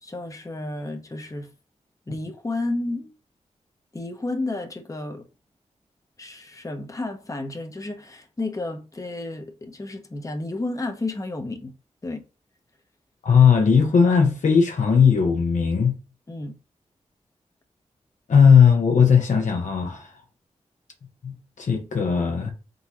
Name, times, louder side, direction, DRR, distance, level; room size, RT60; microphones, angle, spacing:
voice 1, 0.0-1.5 2.1-3.1 3.9-5.3 6.2-11.7 12.0-12.2 16.3-16.6, left 2 dB, 25° left, 0.8 m, -31 dB
voice 2, 13.2-15.9 18.3-20.0 21.2-22.5, left 6 dB, 80° left, 0.9 m, -17 dB
3.9 x 3.9 x 2.9 m
cardioid pair, 50°, 13 cm